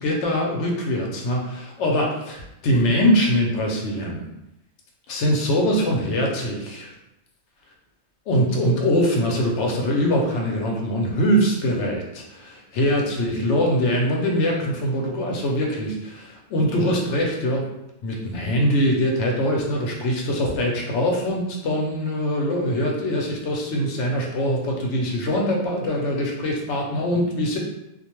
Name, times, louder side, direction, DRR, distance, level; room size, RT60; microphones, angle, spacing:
voice 1, 0.0-4.3 5.1-6.9 8.3-17.6 18.0-27.6, equal, 80° left, 0 dB, 0.9 m, -23 dB
2.4 x 2.1 x 2.9 m, 0.88 s
omnidirectional pair, 1.2 m